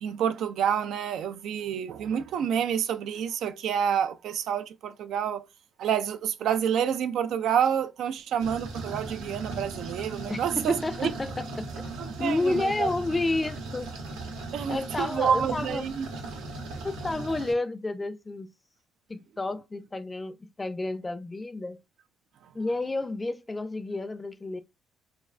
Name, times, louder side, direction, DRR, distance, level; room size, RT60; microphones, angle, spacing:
voice 1, 0.0-5.5 5.8-11.1 12.0-12.9 14.5-16.1 22.4-22.5, right 8 dB, 70° right, 0.3 m, -28 dB
sound 1, 8.4-17.5, right 3 dB, 85° right, 0.7 m, -38 dB
voice 2, 10.3-11.9 12.2-13.9 14.7-15.9 16.8-18.5 19.1-21.8 22.5-24.6, left 2 dB, 20° left, 0.5 m, -30 dB
2.5 x 2.3 x 3.2 m
supercardioid pair, 70°, 0 cm